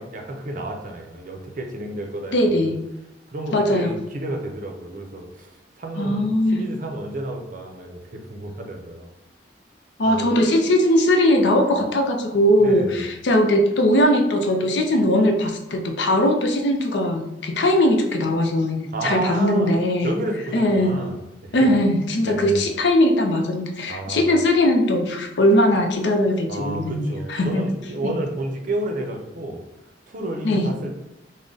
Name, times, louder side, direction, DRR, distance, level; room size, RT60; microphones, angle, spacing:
voice 1, 0.0-2.7 3.3-5.5 5.8-9.1 10.0-10.3 12.6-13.1 18.9-19.7 20.0-21.7 22.2-22.6 23.9-24.4 26.5-29.6 30.1-30.9, right 1 dB, 45° right, 3 dB, 0.5 m, -31 dB
voice 2, 2.3-2.8 3.5-3.9 6.0-6.6 10.0-20.1 20.5-21.0 21.5-27.6 28.0-28.1 30.4-30.7, left 1 dB, 70° left, 3 dB, 0.5 m, -20 dB
3.6 x 2.1 x 3.8 m, 0.93 s
head